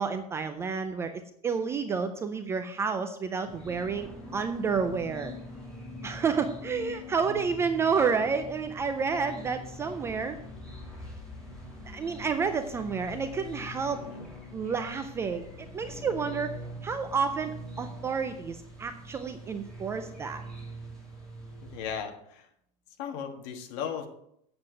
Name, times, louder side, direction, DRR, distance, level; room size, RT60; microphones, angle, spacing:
voice 1, 0.0-5.4 6.0-10.4 11.9-14.0 14.5-16.5 16.8-20.4, right 5 dB, 15° right, 8 dB, 0.3 m, -30 dB
sound 1, 3.4-22.0, left 1 dB, 5° left, 2.6 m, -44 dB
voice 2, 21.7-22.5 23.0-24.1, left 7 dB, 50° left, 5 dB, 1.5 m, -36 dB
7.8 x 7.7 x 6.1 m, 0.73 s
supercardioid pair, 170°, 19 cm